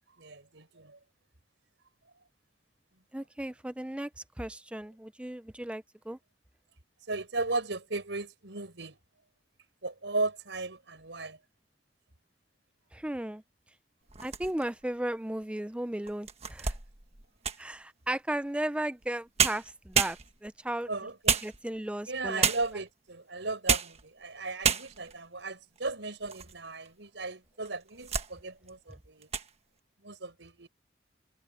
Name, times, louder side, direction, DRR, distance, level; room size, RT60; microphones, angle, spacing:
voice 1, 0.2-1.0 7.1-9.0 9.8-11.4 20.9-21.4 22.1-29.3 30.0-30.7, right 3 dB, 85° right, 4.8 m, -36 dB
voice 2, 3.1-4.1 4.4-6.2 12.9-13.4 14.2-16.7 17.6-20.9 21.4-22.5, right 1 dB, 5° right, 0.5 m, -35 dB
sound 1, 14.1-14.8 15.4-15.5 16.1-17.7 19.0-19.1 19.4-20.6 21.3-22.0 22.4-22.9 23.5-24.0 24.3-24.4 24.6-25.2 25.8-26.5 26.9-27.0 27.6-28.3 28.7-28.9 29.2-29.5, right 7 dB, 35° right, 1.4 m, -30 dB
head